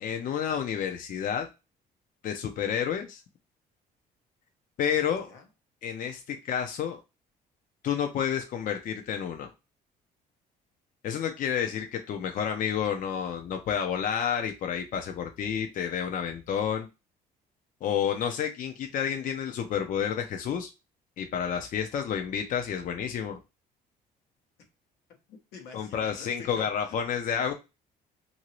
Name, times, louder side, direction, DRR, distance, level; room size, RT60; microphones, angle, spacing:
voice 1, 0.0-1.5 2.2-3.2 4.8-5.3 5.8-7.0 7.8-9.5 11.0-16.9 17.8-20.7 21.2-23.4 25.7-27.5, left 8 dB, 50° left, 0.5 m, -30 dB
voice 2, 25.3-27.0, left 5 dB, 90° left, 1.0 m, -46 dB
2.9 x 2.6 x 2.9 m
cardioid pair, 110°, 17 cm